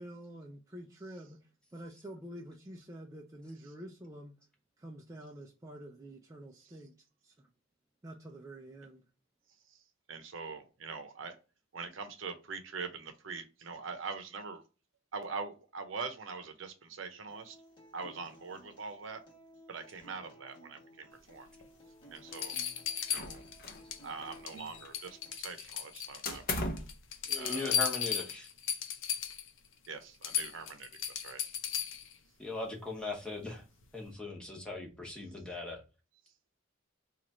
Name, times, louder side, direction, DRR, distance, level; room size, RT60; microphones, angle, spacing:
voice 1, 0.0-4.3 4.8-6.9 7.2-7.5 8.0-9.0, right 1 dB, 15° right, 0.4 m, -48 dB
voice 2, 10.1-11.4 11.7-14.6 15.1-17.6 17.9-19.2 19.7-21.5 22.1-22.6 23.1-23.5 24.0-26.5 27.4-27.7 29.9-30.9 31.1-31.4, right 4 dB, 85° right, 0.7 m, -43 dB
Acoustic guitar, 17.3-25.3, right 1 dB, 25° left, 1.2 m, -56 dB
sound 1, 21.6-21.7 22.3-24.0 24.3-24.7 24.9-26.4 26.8-29.5 29.9-30.0 30.2-32.1 33.8-33.9, left 9 dB, 85° left, 0.6 m, -35 dB
sound 2, 23.1-23.9 24.2-25.1 26.2-27.0, left 2 dB, 50° left, 0.7 m, -38 dB
voice 3, 27.3-28.5 32.4-33.6 33.9-35.8, left 2 dB, 5° left, 0.9 m, -39 dB
3.0 x 2.4 x 4.0 m
head